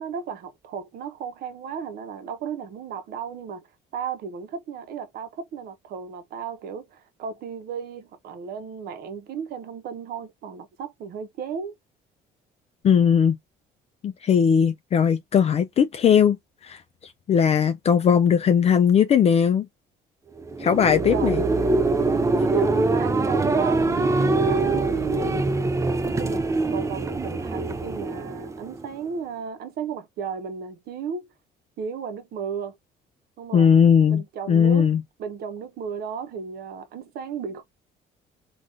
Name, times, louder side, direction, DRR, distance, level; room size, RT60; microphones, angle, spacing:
voice 1, 0.0-3.7 3.9-11.8 21.1-21.5 22.4-25.5 26.0-31.3 31.8-32.8 33.4-33.7 34.1-34.9 35.2-37.6, right 6 dB, 65° right, 0.8 m, -34 dB
voice 2, 12.8-13.4 14.0-16.4 16.6-16.8 17.3-19.7 20.6-21.4 33.5-35.0, left 7 dB, 40° left, 0.4 m, -19 dB
sound 1, 20.4-29.0, right 3 dB, 20° right, 0.5 m, -23 dB
3.4 x 2.4 x 2.5 m
cardioid pair, 110°, 17 cm